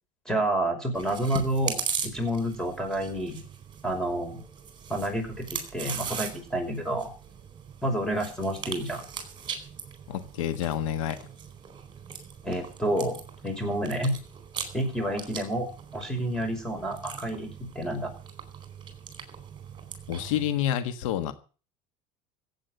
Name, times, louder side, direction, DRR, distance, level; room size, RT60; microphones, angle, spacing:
voice 1, 0.3-3.4 3.8-4.4 4.9-7.1 7.8-9.0 12.4-13.1 13.4-14.2 14.7-15.7 15.9-18.1, right 1 dB, 5° left, 5.6 m, -29 dB
Chewing mastication, 0.9-20.5, right 7 dB, 30° right, 4.3 m, -40 dB
voice 2, 10.1-11.2 20.1-21.3, left 10 dB, 90° left, 1.4 m, -28 dB
15.5 x 8.6 x 7.9 m
supercardioid pair, 110°, 16 cm